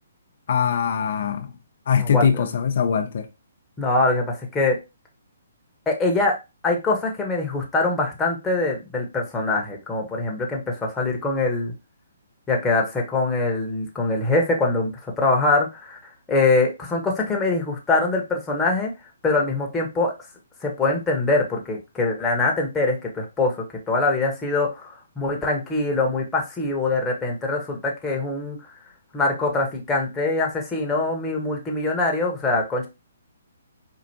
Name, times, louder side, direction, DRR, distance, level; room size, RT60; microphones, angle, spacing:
voice 1, 0.5-1.5 1.9-3.3, left 7 dB, 60° left, 0.4 m, -22 dB
voice 2, 2.0-2.5 3.8-4.8 5.9-6.4 6.6-11.7 12.5-14.9 15.2-16.0 16.3-18.9 19.2-20.1 20.6-23.6 23.9-28.6 29.1-32.9, left 2 dB, 10° left, 0.9 m, -23 dB
4.4 x 2.4 x 2.7 m
hypercardioid pair, 150°, 0 cm